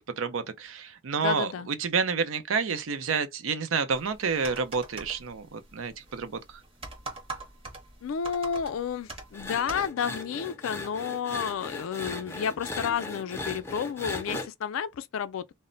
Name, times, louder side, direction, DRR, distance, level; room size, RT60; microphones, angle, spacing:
voice 1, 0.0-6.6, right 5 dB, 80° right, 0.5 m, -29 dB
voice 2, 1.2-1.7 8.0-15.4, left 7 dB, 85° left, 0.4 m, -31 dB
sound 1, 3.9-9.9, right 3 dB, 25° right, 0.7 m, -43 dB
sound 2, 9.3-14.5, left 2 dB, 10° left, 0.4 m, -37 dB
2.1 x 2.0 x 3.7 m
head